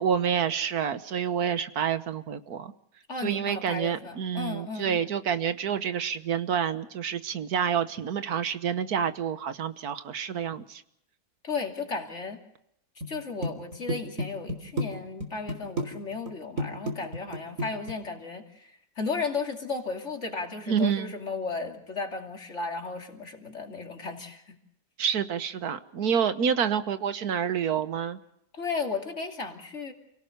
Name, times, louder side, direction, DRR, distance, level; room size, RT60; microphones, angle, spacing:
voice 1, 0.0-2.7 3.2-10.8 20.7-21.1 25.0-28.2, right 8 dB, 85° right, 11 dB, 1.7 m, -28 dB
voice 2, 3.1-5.0 11.4-12.4 13.1-24.6 28.6-29.9, left 4 dB, 50° left, 3 dB, 3.1 m, -34 dB
sound 1, 13.0-13.2 13.4-14.9 15.2-16.3 16.6-17.9, equal, 60° right, 3.5 m, -30 dB
29.5 x 17.5 x 6.6 m, 0.78 s
omnidirectional pair, 1.6 m